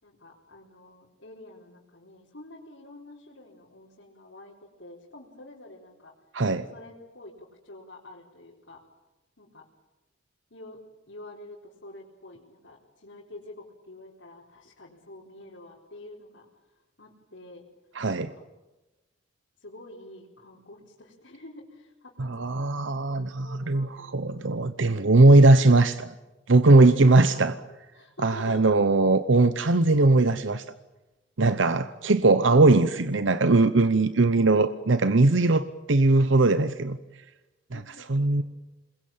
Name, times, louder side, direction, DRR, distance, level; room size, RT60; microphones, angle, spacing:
voice 1, 0.0-6.1 6.7-8.8 9.4-9.6 10.5-10.8 11.1-16.5 17.0-17.7 18.2-18.5 19.6-22.5 23.1-24.3 26.7-27.4 27.9-28.8 33.8-33.9 37.7-38.4, left 2 dB, 75° left, -5 dB, 4.5 m, -47 dB
voice 2, 6.3-6.7 17.9-18.3 22.2-26.1 26.5-27.5 28.2-30.7 31.4-37.0 37.7-37.8 38.1-38.4, right 2 dB, 80° right, 12 dB, 0.9 m, -20 dB
27.5 x 22.0 x 8.8 m, 1.1 s
head